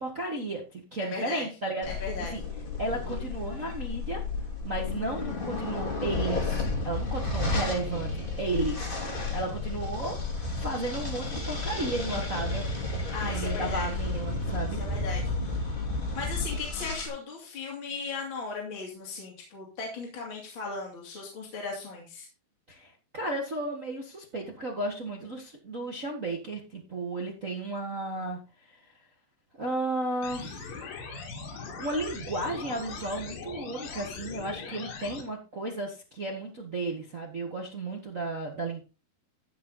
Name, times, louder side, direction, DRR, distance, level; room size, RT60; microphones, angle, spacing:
voice 1, 0.0-2.4 2.8-4.2 4.6-6.5 6.8-8.8 9.1-12.7 13.2-14.8 22.7-28.8 29.6-30.8 31.4-38.8, right 2 dB, 65° right, 0 dB, 0.8 m, -34 dB
voice 2, 1.0-1.4 1.8-2.3 13.1-13.9 14.6-15.6 16.1-22.3, left 4 dB, 35° left, -2 dB, 3.2 m, -37 dB
sound 1, 1.8-17.1, left 3 dB, 15° left, 2.1 m, -32 dB
sound 2, 30.2-35.2, left 5 dB, 65° left, 3.8 m, -40 dB
14.5 x 6.5 x 4.0 m, 0.31 s
omnidirectional pair, 4.5 m